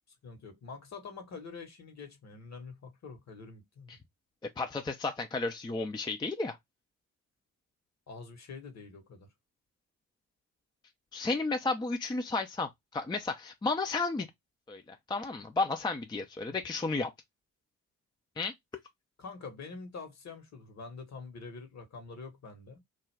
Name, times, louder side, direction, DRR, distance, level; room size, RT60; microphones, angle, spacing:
voice 1, 0.2-4.0 8.1-9.3 16.5-16.6 19.2-22.8, left 4 dB, 40° left, 1.2 m, -46 dB
voice 2, 4.6-6.6 11.1-14.3 14.7-17.1 18.4-18.5, left 3 dB, 10° left, 0.5 m, -32 dB
2.5 x 2.1 x 3.3 m
hypercardioid pair, 40°, 40 cm